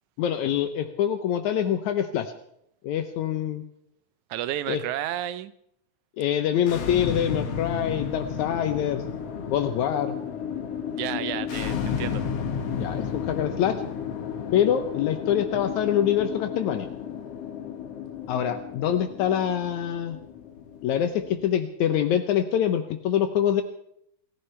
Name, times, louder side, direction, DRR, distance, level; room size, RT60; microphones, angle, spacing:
voice 1, 0.2-2.3 2.8-3.6 4.7-4.8 6.2-9.0 9.5-10.2 12.8-13.8 14.5-16.9 18.3-20.2 20.8-23.6, left 9 dB, 80° left, 7 dB, 2.3 m, -25 dB
voice 2, 4.3-5.5 10.9-12.2, right 12 dB, 85° right, 13 dB, 2.2 m, -31 dB
sound 1, 6.6-21.5, left 7 dB, 60° left, 2.3 m, -33 dB
29.5 x 14.5 x 3.3 m, 0.73 s
omnidirectional pair, 3.3 m